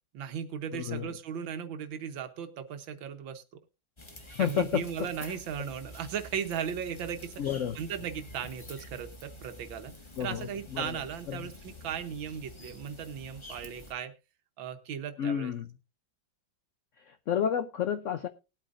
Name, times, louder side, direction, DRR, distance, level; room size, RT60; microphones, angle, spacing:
voice 1, 0.1-3.4 4.4-7.3 7.7-9.9 10.2-14.1 14.6-15.5, right 8 dB, 85° right, 8 dB, 1.7 m, -37 dB
voice 2, 0.7-1.1 4.3-4.8 5.2-5.3 7.4-7.8 10.2-11.0 11.3-11.5 15.2-15.7 17.1-18.3, left 9 dB, 70° left, 11 dB, 0.7 m, -31 dB
sound 1, 4.0-13.9, left 1 dB, 15° left, 1.3 m, -49 dB
20.0 x 8.8 x 2.5 m, 0.29 s
omnidirectional pair, 2.1 m